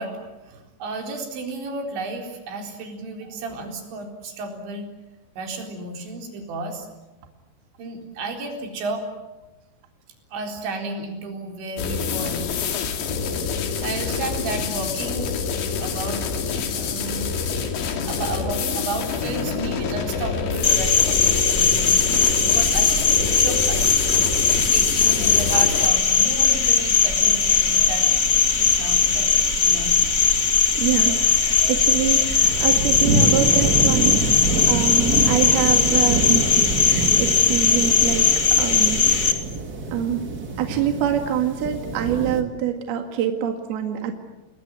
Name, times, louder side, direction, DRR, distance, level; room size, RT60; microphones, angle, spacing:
voice 1, 0.0-4.9 5.4-6.9 7.8-9.1 10.3-12.4 13.0-13.1 13.5-15.3 15.8-17.4 17.8-24.0 24.7-28.1 28.5-29.4 29.6-29.9, right 3 dB, 90° right, 3 dB, 6.5 m, -32 dB
sound 1, 11.8-25.9, left 6 dB, 75° left, 4.6 m, -27 dB
Cricket, 20.6-39.3, left 6 dB, 30° left, 1.5 m, -19 dB
sound 2, 30.8-42.4, right 3 dB, 30° right, 1.8 m, -27 dB
voice 2, 30.8-38.3 38.6-39.4 39.9-40.3 40.6-44.1, right 9 dB, 65° right, 5 dB, 3.7 m, -25 dB
29.5 x 21.0 x 9.5 m, 1.1 s
omnidirectional pair, 5.0 m